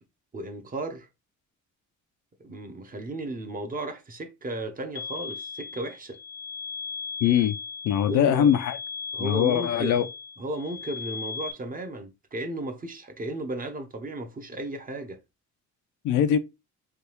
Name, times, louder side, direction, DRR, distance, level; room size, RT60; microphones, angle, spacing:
voice 1, 0.3-1.1 2.4-6.2 8.1-8.5 9.1-10.1 10.4-15.2, right 1 dB, 30° right, 0.7 m, -34 dB
sound 1, 5.0-11.5, left 5 dB, 30° left, 0.5 m, -37 dB
voice 2, 7.2-7.5 7.8-8.8 9.2-10.0 16.0-16.4, left 10 dB, 80° left, 0.5 m, -22 dB
3.4 x 2.3 x 3.0 m
cardioid pair, 90°, 30 cm